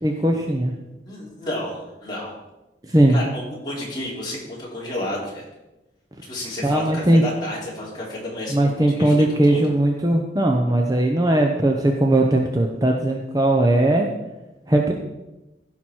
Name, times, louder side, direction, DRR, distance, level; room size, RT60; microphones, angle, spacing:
voice 1, 0.0-0.7 2.9-3.2 6.6-7.2 8.5-14.1 14.7-14.9, right 1 dB, 20° right, 2 dB, 0.7 m, -19 dB
voice 2, 1.0-2.3 2.9-5.4 6.3-9.7, left 1 dB, 25° left, -5 dB, 3.2 m, -31 dB
15.5 x 5.9 x 4.5 m, 1.0 s
head